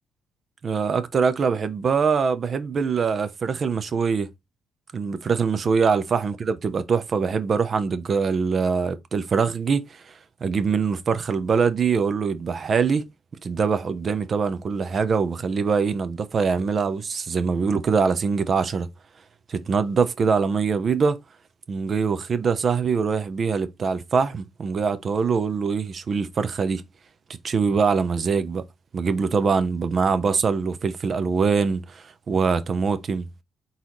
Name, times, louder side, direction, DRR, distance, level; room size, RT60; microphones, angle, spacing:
voice 1, 0.6-4.3 4.9-9.9 10.4-13.1 13.4-18.9 19.5-21.2 21.7-26.8 27.4-28.6 28.9-33.3, right 5 dB, 45° right, 0.7 m, -23 dB
4.1 x 3.9 x 3.0 m
cardioid pair, 90°, 0 cm